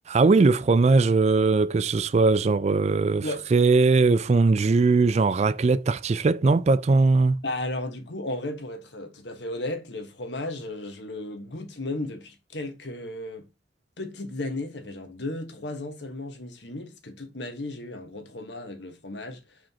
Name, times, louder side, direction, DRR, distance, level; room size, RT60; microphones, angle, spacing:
voice 1, 0.1-7.4, right 3 dB, 35° right, 0.4 m, -20 dB
voice 2, 7.4-13.5 14.0-19.4, left 2 dB, 70° left, 1.4 m, -34 dB
5.7 x 5.1 x 3.6 m
head